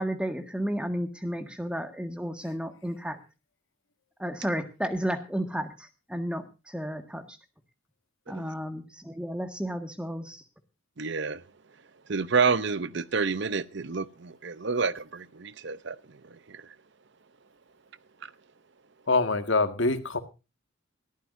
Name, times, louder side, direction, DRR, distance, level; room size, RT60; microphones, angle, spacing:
voice 1, 0.0-3.2 4.2-7.4 8.3-10.4, equal, 5° right, 1.7 m, -32 dB
voice 2, 11.0-11.4 12.1-16.7 18.2-18.3, right 5 dB, 55° right, 0.7 m, -29 dB
voice 3, 19.1-20.2, left 3 dB, 60° left, 1.8 m, -24 dB
20.5 x 14.0 x 2.6 m
head